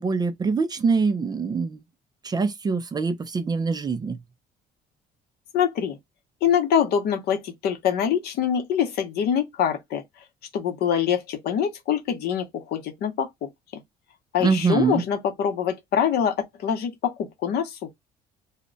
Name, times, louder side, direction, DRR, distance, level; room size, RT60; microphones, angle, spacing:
voice 1, 0.0-1.8 2.2-4.2 14.4-15.0, right 4 dB, 25° right, 0.4 m, -24 dB
voice 2, 5.5-6.0 6.4-10.0 10.5-13.8 14.3-17.8, left 8 dB, 70° left, 0.8 m, -24 dB
2.2 x 2.1 x 3.7 m
cardioid pair, 110°, 17 cm